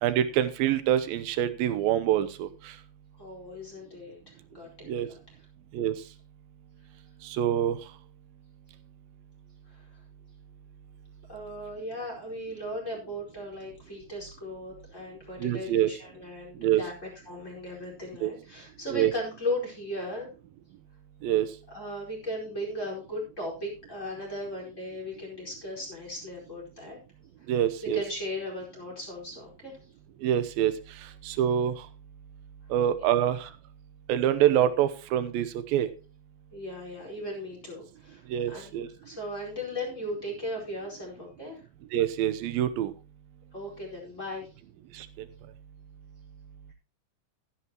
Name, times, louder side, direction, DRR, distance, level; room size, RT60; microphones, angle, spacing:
voice 1, 0.0-2.7 4.9-5.1 5.7-5.9 7.2-7.8 15.4-15.9 16.6-16.8 18.2-18.3 18.9-19.1 21.2-21.5 27.5-28.0 30.2-30.7 31.2-31.7 32.7-33.5 34.1-35.9 38.3-38.9 41.9-42.9 44.9-45.1, right 11 dB, 80° right, 12 dB, 2.7 m, -25 dB
voice 2, 3.2-4.2 4.5-5.2 9.7-9.8 11.3-20.3 21.7-27.0 27.9-29.8 36.5-38.7 39.0-41.6 43.5-44.5, left 1 dB, 20° left, -2 dB, 4.9 m, -37 dB
14.0 x 11.0 x 3.0 m, 0.32 s
omnidirectional pair, 4.2 m